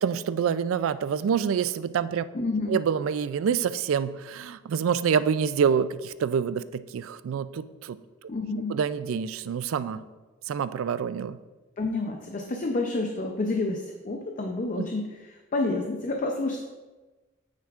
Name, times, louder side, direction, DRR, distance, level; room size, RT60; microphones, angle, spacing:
voice 1, 0.0-2.2 2.7-8.0 8.7-10.0 10.5-11.4 14.8-14.9, right 7 dB, 75° right, 14 dB, 0.3 m, -27 dB
voice 2, 2.3-2.8 8.3-8.8 11.8-16.6, left 2 dB, 40° left, 3 dB, 0.5 m, -29 dB
9.0 x 6.9 x 2.4 m, 1.2 s
head